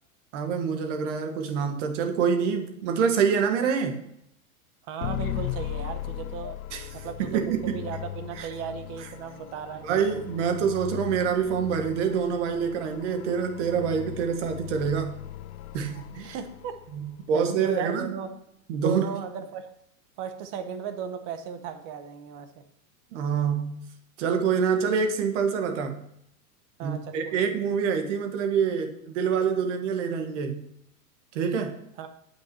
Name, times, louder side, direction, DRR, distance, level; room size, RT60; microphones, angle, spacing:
voice 1, 0.3-4.0 6.7-6.9 7.2-7.8 8.4-8.5 9.8-15.2 15.7-16.4 16.9-18.1 18.7-19.0 23.1-23.8 24.2-26.1 26.8-30.7 31.3-31.8, right 6 dB, 55° right, 6 dB, 1.5 m, -26 dB
voice 2, 4.9-6.6 7.0-9.8 16.2-16.8 17.3-18.3 18.8-19.7 20.2-22.5 26.8-27.4 32.0-32.1, right 7 dB, 30° right, 9 dB, 0.9 m, -36 dB
sound 1, 5.0-17.2, left 12 dB, 80° left, 0.7 m, -38 dB
8.4 x 5.8 x 6.1 m, 0.75 s
supercardioid pair, 165°, 42 cm